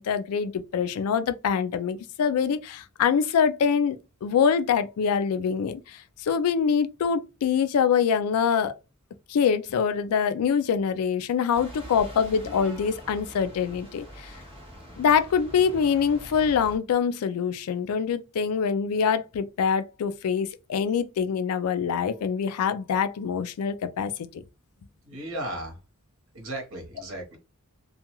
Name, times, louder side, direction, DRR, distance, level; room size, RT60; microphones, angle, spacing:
voice 1, 0.0-8.7 9.3-14.3 15.0-24.1, left 6 dB, 75° left, 0.3 m, -25 dB
sound 1, 11.5-16.8, equal, 25° right, 0.7 m, -44 dB
voice 2, 25.0-25.8 26.3-27.4, right 1 dB, 60° right, 1.0 m, -35 dB
2.4 x 2.3 x 2.9 m
head